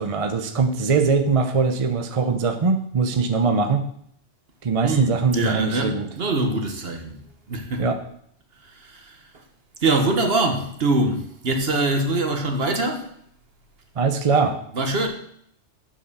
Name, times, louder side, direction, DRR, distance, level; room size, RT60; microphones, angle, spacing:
voice 1, 0.0-3.8 4.6-6.1 7.8-8.0 14.0-14.6, right 4 dB, 35° right, 0.6 m, -21 dB
voice 2, 4.8-7.1 7.5-7.9 8.6-9.4 9.8-13.1 14.7-15.1, right 2 dB, 55° right, 1.4 m, -24 dB
7.3 x 5.7 x 6.7 m
omnidirectional pair, 1.2 m